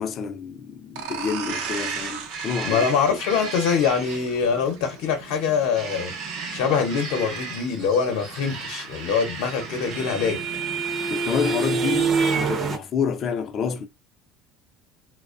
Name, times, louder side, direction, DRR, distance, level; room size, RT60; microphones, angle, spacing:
voice 1, 0.0-2.8 11.1-13.9, left 6 dB, 35° left, 0.3 m, -28 dB
sound 1, 0.9-6.3, right 7 dB, 90° right, 0.5 m, -38 dB
sound 2, 1.5-11.2, right 4 dB, 60° right, 0.8 m, -36 dB
voice 2, 2.6-6.1 6.5-10.4, left 6 dB, 80° left, 0.6 m, -24 dB
sound 3, 8.9-12.8, right 5 dB, 30° right, 0.5 m, -26 dB
2.4 x 2.0 x 2.4 m
cardioid pair, 165°, 0 cm